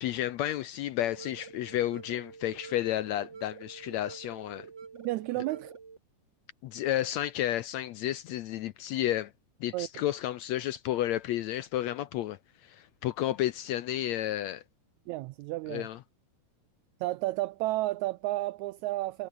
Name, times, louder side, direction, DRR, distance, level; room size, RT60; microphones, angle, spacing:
voice 1, 0.0-4.7 6.6-9.3 9.6-14.6 15.7-16.0, left 13 dB, 75° left, 1.8 m, -32 dB
sound 1, 1.0-6.0, right 5 dB, 35° right, 2.8 m, -48 dB
voice 2, 4.9-5.7 9.7-9.9 15.1-15.9 17.0-19.3, right 18 dB, 80° right, 1.7 m, -32 dB
omnidirectional pair, 3.7 m